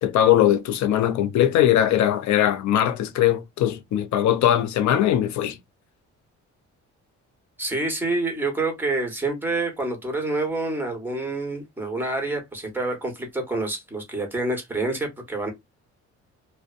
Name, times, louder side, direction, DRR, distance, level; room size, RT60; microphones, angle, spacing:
voice 1, 0.0-5.6, left 11 dB, 70° left, 0.5 m, -20 dB
voice 2, 7.6-15.5, right 2 dB, 5° right, 1.1 m, -27 dB
2.5 x 2.1 x 2.4 m
cardioid pair, 90°, 30 cm